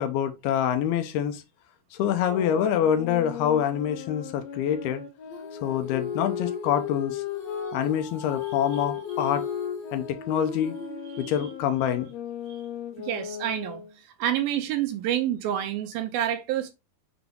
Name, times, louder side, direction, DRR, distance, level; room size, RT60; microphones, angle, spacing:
voice 1, 0.0-1.4 2.0-5.0 5.6-7.2 7.7-9.4 9.9-10.8 11.2-12.1, left 9 dB, 80° left, 2.6 m, -26 dB
sound 1, 2.1-7.8 8.3-13.9, left 9 dB, 60° left, 2.1 m, -36 dB
Female singing, 5.3-11.8, left 3 dB, 40° left, 1.8 m, -40 dB
voice 2, 13.0-13.8 14.2-16.7, right 11 dB, 80° right, 2.4 m, -28 dB
6.9 x 3.9 x 3.7 m
omnidirectional pair, 4.6 m